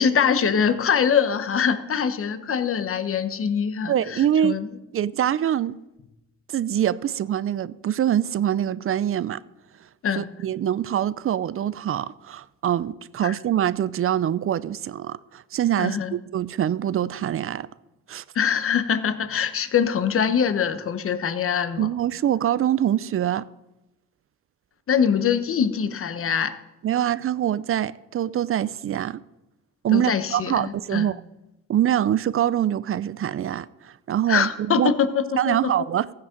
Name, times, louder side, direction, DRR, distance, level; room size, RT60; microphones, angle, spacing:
voice 1, 0.0-4.7 10.0-10.3 13.2-13.3 15.8-16.1 18.3-21.9 24.9-26.5 29.9-31.1 34.3-35.7, left 7 dB, 45° left, 1.1 m, -23 dB
voice 2, 3.9-4.6 4.9-5.8 6.5-9.4 10.1-17.7 18.1-18.2 21.8-23.5 26.8-29.2 29.8-31.2 31.7-34.9 35.4-36.1, right 10 dB, 45° right, 0.5 m, -24 dB
15.0 x 9.6 x 5.2 m
cardioid pair, 90°, 30 cm